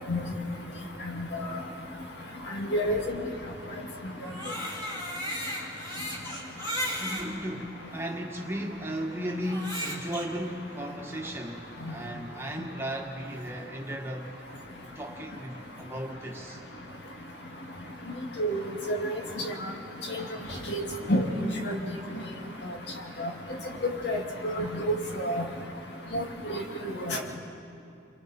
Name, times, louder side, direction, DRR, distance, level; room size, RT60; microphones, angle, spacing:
voice 1, 1.1-1.5 2.6-3.0 18.4-19.1 19.4-19.5 20.1-20.2 20.7-21.3 21.6-21.8 23.2-23.3 24.0-24.9 25.2-25.4 26.1-26.2 26.5-26.6 27.1-27.2, equal, 65° left, 1 dB, 2.2 m, -29 dB
Crying sobbing, 4.1-7.3 8.0-8.1 9.4-10.3, equal, 20° left, 2.9 m, -35 dB
voice 2, 6.7-14.3 14.9-16.6, equal, 15° right, 0 dB, 1.5 m, -36 dB
30.0 x 23.5 x 4.3 m, 2.5 s
head